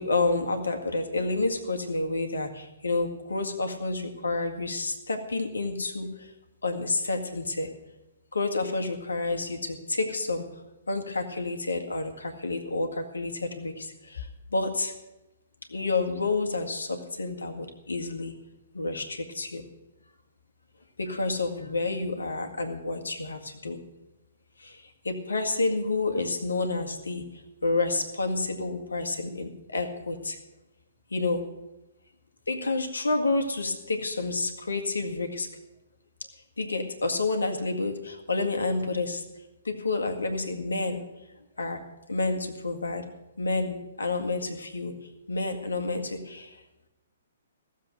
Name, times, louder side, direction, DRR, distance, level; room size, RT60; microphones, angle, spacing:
voice 1, 0.0-6.3 6.6-7.7 8.3-10.4 10.9-14.9 15.7-18.3 18.7-19.6 21.0-23.8 24.6-27.2 27.6-30.4 31.1-31.5 32.5-35.5 36.6-39.2 39.6-41.0 41.6-41.8 42.1-43.0 43.4-44.9 45.3-46.6, left 3 dB, 70° left, 5 dB, 1.8 m, -29 dB
15.5 x 7.4 x 7.6 m, 1.0 s
figure-of-eight pair, 120°, 0 cm